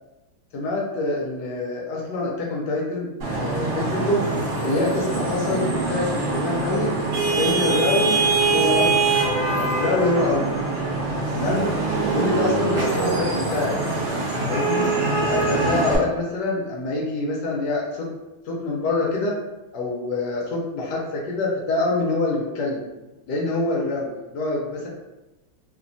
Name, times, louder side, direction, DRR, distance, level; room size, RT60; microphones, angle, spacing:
voice 1, 0.5-4.2 4.6-6.9 7.4-8.2 8.5-9.1 9.5-10.6 11.3-11.7 12.1-13.7 14.5-14.9 15.2-18.1 18.5-19.4 19.7-22.9 23.3-24.9, left 2 dB, 75° left, -2 dB, 1.1 m, -25 dB
Vehicle horn car horn honking / Traffic noise roadway noise, 3.2-16.0, right 3 dB, 50° right, 0.9 m, -23 dB
3.1 x 2.1 x 2.5 m, 1.0 s
omnidirectional pair, 2.1 m